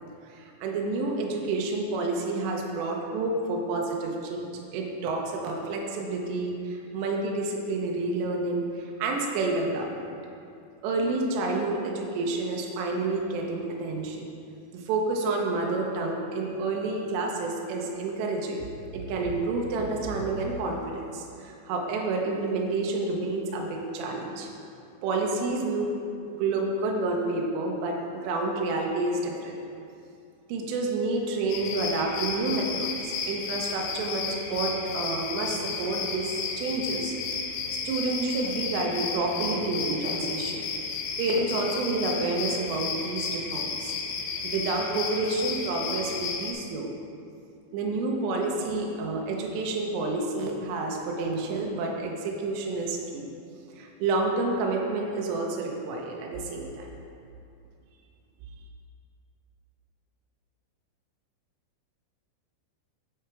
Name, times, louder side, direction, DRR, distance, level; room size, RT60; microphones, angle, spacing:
voice 1, 0.3-10.1 10.8-14.3 14.7-18.7 18.9-24.5 25.0-25.9 26.2-29.6 30.5-37.2 37.4-37.6 37.8-40.6 41.2-43.9 44.4-46.9 47.7-53.3 53.8-56.9, right 3 dB, 75° right, 0 dB, 2.9 m, -29 dB
sound 1, 31.5-46.5, left 5 dB, 80° left, 2.7 m, -33 dB
8.1 x 6.3 x 4.7 m, 2.5 s
omnidirectional pair, 5.4 m